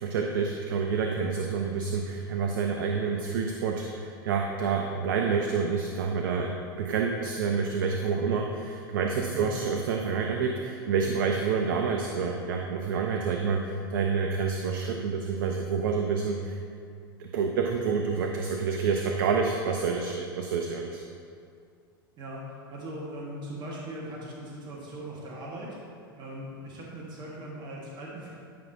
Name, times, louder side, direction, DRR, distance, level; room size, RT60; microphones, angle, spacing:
voice 1, 0.0-16.5 17.2-21.0, right 5 dB, 65° right, 3 dB, 0.6 m, -28 dB
voice 2, 22.2-25.8 26.2-28.4, right 1 dB, 35° right, -4 dB, 1.4 m, -40 dB
10.5 x 5.5 x 2.7 m, 2.3 s
hypercardioid pair, 95°, 12 cm